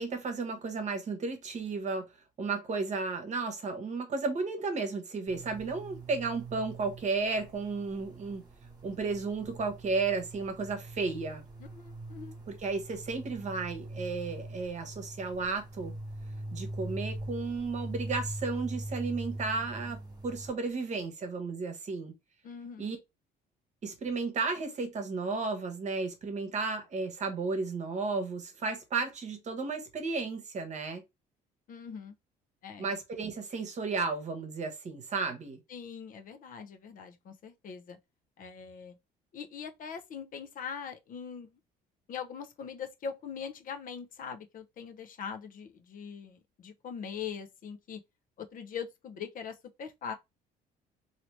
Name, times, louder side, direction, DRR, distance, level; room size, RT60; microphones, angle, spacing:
voice 1, 0.0-2.1 2.4-8.4 8.8-11.4 12.5-15.9 16.5-22.1 22.8-23.0 23.8-31.0 32.8-35.6, right 4 dB, 45° right, 1.0 m, -33 dB
sound 1, 5.3-20.5, right 1 dB, 25° right, 1.3 m, -42 dB
voice 2, 11.6-12.4 22.4-22.9 31.7-32.1 32.6-32.9 35.7-38.0 38.4-39.0 39.3-41.5 42.1-48.0 48.4-50.1, left 7 dB, 55° left, 0.7 m, -42 dB
2.9 x 2.8 x 3.1 m
cardioid pair, 110°, 17 cm